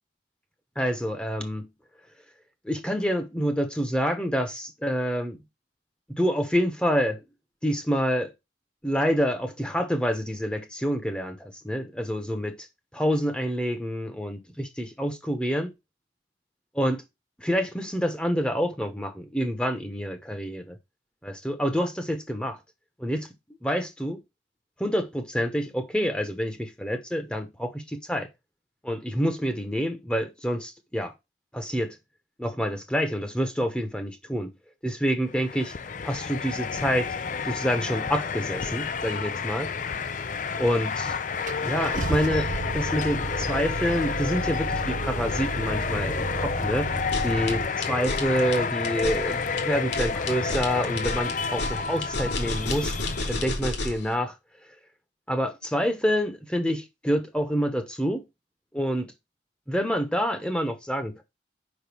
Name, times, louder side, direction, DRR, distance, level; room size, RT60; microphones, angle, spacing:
voice 1, 0.8-1.7 2.6-5.4 6.1-7.2 7.6-8.3 8.8-12.7 12.9-15.7 16.7-17.0 17.4-20.8 21.2-22.6 23.0-23.3 23.6-24.2 24.8-28.3 28.8-31.1 31.5-32.0 32.4-34.5 34.8-35.7 36.0-37.1 37.5-39.7 40.6-41.1 41.6-46.9 47.2-52.9 53.3-54.3 55.3-58.2 58.7-59.1 59.7-61.2, equal, 5° left, 1.1 m, -27 dB
sound 1, 35.3-53.7, left 5 dB, 45° left, 0.5 m, -30 dB
Car / Engine starting, 40.8-40.9 41.5-47.7, right 3 dB, 45° right, 0.5 m, -33 dB
sound 2, 47.0-54.1, left 2 dB, 65° left, 2.4 m, -31 dB
5.4 x 5.4 x 6.2 m
head